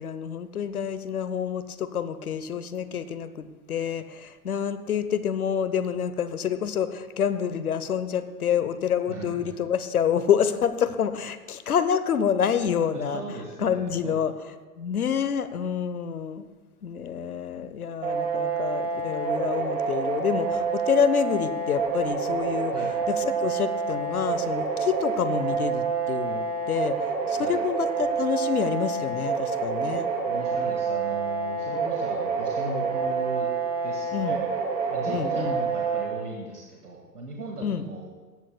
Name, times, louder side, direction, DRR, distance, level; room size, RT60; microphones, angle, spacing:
voice 1, 0.0-13.2 13.6-14.3 14.8-16.5 16.8-22.7 23.1-30.1 31.8-31.9 34.1-34.4 35.1-35.5 37.6-37.9, left 8 dB, 70° left, 13 dB, 0.9 m, -27 dB
voice 2, 9.1-9.5 12.9-14.2 22.7-22.9 27.4-27.6 30.2-33.5 33.8-34.4 34.9-38.1, right 2 dB, 80° right, -1 dB, 1.9 m, -38 dB
sound 1, 18.0-36.0, right 5 dB, 60° right, 3.4 m, -28 dB
18.0 x 15.0 x 2.3 m, 1.3 s
figure-of-eight pair, 105°, 45 cm